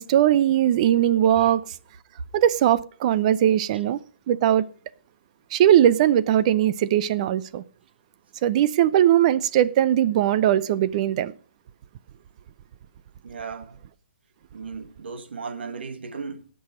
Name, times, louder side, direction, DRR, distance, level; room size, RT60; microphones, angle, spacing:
voice 1, 0.0-1.6 2.3-4.0 4.3-4.7 5.5-7.6 8.4-11.3, right 11 dB, 40° right, 0.7 m, -20 dB
voice 2, 13.2-13.8 14.5-16.5, right 5 dB, 70° right, 1.9 m, -36 dB
18.5 x 6.3 x 5.0 m
hypercardioid pair, 145°, 6 cm